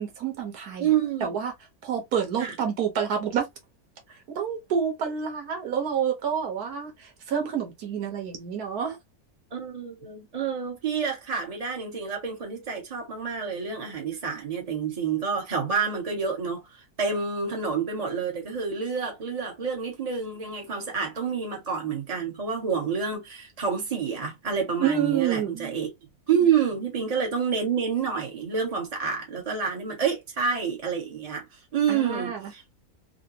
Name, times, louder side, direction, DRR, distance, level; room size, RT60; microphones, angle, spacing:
voice 1, 0.0-0.9 1.2-1.5 1.8-3.5 4.3-9.0 24.8-25.7 31.9-32.5, right 8 dB, 80° right, 1.5 m, -28 dB
voice 2, 0.8-1.3 2.4-2.5 9.5-16.6 17.0-25.9 26.3-31.4 31.7-32.6, right 6 dB, 25° right, 1.2 m, -28 dB
3.9 x 2.2 x 2.7 m
omnidirectional pair, 1.6 m